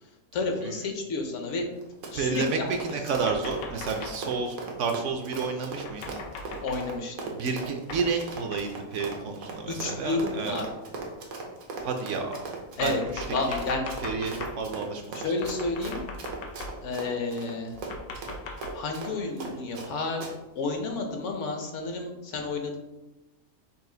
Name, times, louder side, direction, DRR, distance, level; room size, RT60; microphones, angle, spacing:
voice 1, 0.3-1.7 2.1-3.2 6.6-7.2 9.7-10.7 12.8-13.8 15.1-16.0 16.8-17.8 18.7-22.8, left 3 dB, 65° left, 3 dB, 1.0 m, -31 dB
Run, 1.8-19.9 20.2-20.3, right 3 dB, 85° right, 1.3 m, -39 dB
voice 2, 2.1-6.1 7.3-10.6 11.8-12.4 12.8-13.6 14.0-15.2, right 5 dB, 65° right, 4 dB, 0.8 m, -31 dB
sound 1, 3.1-4.3 5.8-6.9 7.9-8.2 8.5-8.7 9.0-9.1 10.0-10.1 11.1-11.2 12.3-14.6 15.4-17.0 17.7-18.8, left 3 dB, 85° left, 1.1 m, -40 dB
5.5 x 2.5 x 3.8 m, 1.0 s
omnidirectional pair, 1.5 m